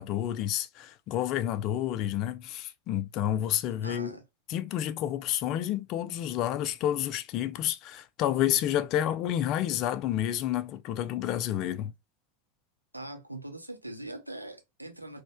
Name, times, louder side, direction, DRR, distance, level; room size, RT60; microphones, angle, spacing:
voice 1, 0.0-4.2 4.5-11.9, left 11 dB, 45° left, 0.3 m, -30 dB
voice 2, 3.8-4.2 12.9-15.2, right 1 dB, 90° right, 0.6 m, -41 dB
4.2 x 2.1 x 2.2 m
figure-of-eight pair, 80°, 0 cm